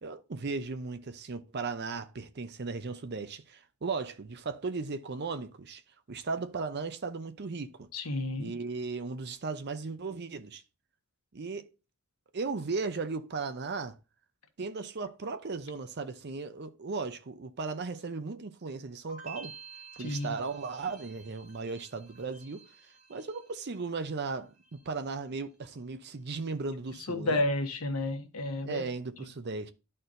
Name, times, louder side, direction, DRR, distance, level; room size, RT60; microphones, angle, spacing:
voice 1, 0.0-5.8 6.1-7.9 8.4-10.6 11.3-11.7 12.3-13.9 14.6-19.5 20.0-22.6 23.1-27.4 28.6-29.7, right 4 dB, 50° right, 0.6 m, -36 dB
voice 2, 7.9-8.5 20.0-20.3 27.1-28.8, left 2 dB, 75° left, 1.1 m, -31 dB
sound 1, 19.1-24.1 24.4-25.1, right 5 dB, 85° right, 2.1 m, -51 dB
12.5 x 4.3 x 2.6 m
head